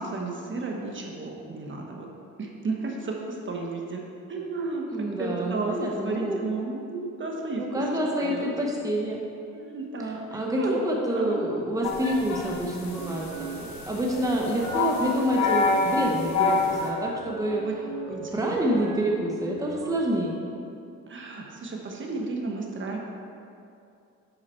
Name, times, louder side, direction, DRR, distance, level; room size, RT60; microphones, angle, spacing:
voice 1, 0.0-2.1 2.4-4.0 4.3-5.8 6.0-7.6 8.2-8.5 9.5-10.8 11.1-11.4 17.6-17.7 18.1-18.8 21.1-23.0, right 3 dB, 40° right, 0 dB, 1.2 m, -33 dB
voice 2, 4.9-6.4 7.6-9.2 10.0-17.9 18.3-20.4, right 1 dB, 10° right, -2 dB, 1.0 m, -27 dB
sound 1, 11.8-16.9, left 4 dB, 65° left, 1.3 m, -27 dB
sound 2, 12.9-19.9, right 5 dB, 65° right, 0.9 m, -41 dB
8.0 x 5.7 x 4.5 m, 2.6 s
cardioid pair, 90°, 30 cm